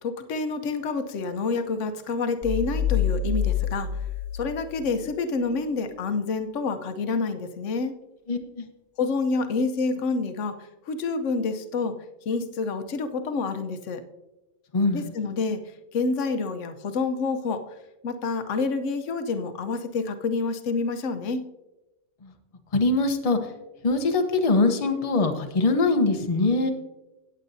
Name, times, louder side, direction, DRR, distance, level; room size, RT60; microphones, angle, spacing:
voice 1, 0.0-4.0 4.3-7.9 9.0-12.0 12.3-14.0 14.9-15.6 15.9-17.6 18.0-21.4, left 4 dB, 60° left, 8 dB, 1.1 m, -28 dB
sound 1, 2.4-5.0, left 8 dB, 30° right, 1.2 m, -27 dB
voice 2, 8.3-8.7 14.7-15.1 22.2-22.3 22.7-23.4 23.8-26.7, left 3 dB, 30° left, 5 dB, 0.8 m, -22 dB
18.0 x 8.0 x 2.7 m, 1.0 s
omnidirectional pair, 1.5 m